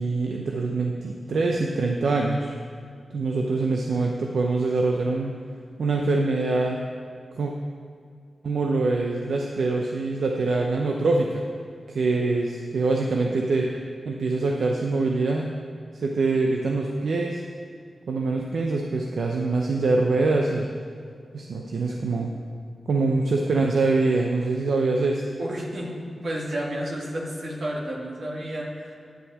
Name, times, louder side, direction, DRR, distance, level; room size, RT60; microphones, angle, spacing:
voice 1, 0.0-2.5 3.1-5.3 5.8-6.8 7.4-7.5 8.4-11.4 11.9-13.7 14.0-15.5 15.9-17.4 18.1-20.7 21.3-22.3 22.9-25.2, right 3 dB, 75° right, 1 dB, 0.7 m, -24 dB
voice 2, 25.4-25.9 26.2-29.0, right 1 dB, 60° right, -2 dB, 1.9 m, -31 dB
10.0 x 5.7 x 7.4 m, 2.2 s
wide cardioid pair, 100°, 0 cm